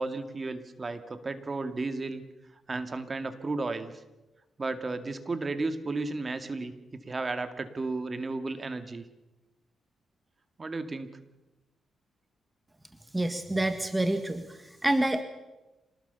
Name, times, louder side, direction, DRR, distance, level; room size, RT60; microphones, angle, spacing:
voice 1, 0.0-2.2 2.7-3.9 4.6-9.0 10.6-11.1, right 3 dB, 35° right, 9 dB, 2.1 m, -33 dB
voice 2, 13.1-14.4 14.8-15.2, right 1 dB, 15° right, 8 dB, 1.6 m, -27 dB
26.5 x 19.5 x 6.9 m, 1.0 s
cardioid pair, 85°, 0 cm